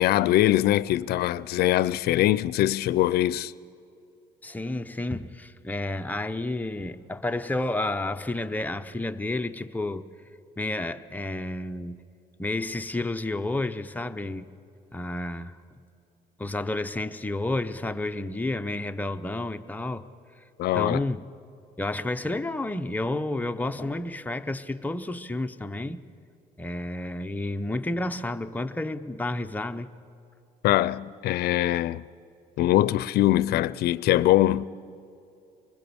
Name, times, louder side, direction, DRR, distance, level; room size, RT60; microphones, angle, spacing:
voice 1, 0.0-3.5 20.6-21.0 30.6-32.0 32.6-34.7, left 14 dB, 70° left, 0.5 m, -22 dB
voice 2, 4.4-10.0 10.6-12.0 12.4-14.5 14.9-15.6 16.4-20.0 20.7-21.2 21.8-26.0 26.6-29.9, left 2 dB, 10° left, 0.7 m, -30 dB
25.5 x 20.5 x 7.0 m
cardioid pair, 110°, 17 cm